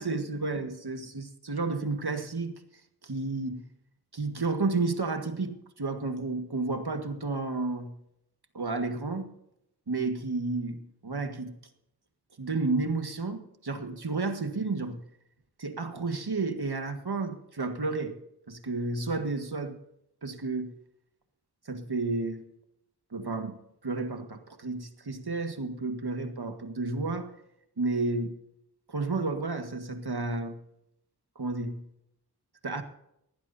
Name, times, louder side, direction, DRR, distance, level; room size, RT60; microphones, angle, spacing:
voice 1, 0.0-2.6 3.0-3.6 4.1-7.9 8.5-9.3 9.9-11.5 12.4-15.0 15.6-18.2 18.5-19.8 20.2-20.7 21.7-22.4 23.1-23.6 23.8-27.3 27.8-28.3 28.9-30.6 31.3-31.8 32.6-32.8, right 3 dB, 75° right, 1.7 m, -31 dB
20.0 x 15.5 x 2.7 m
wide cardioid pair, 50°, 39 cm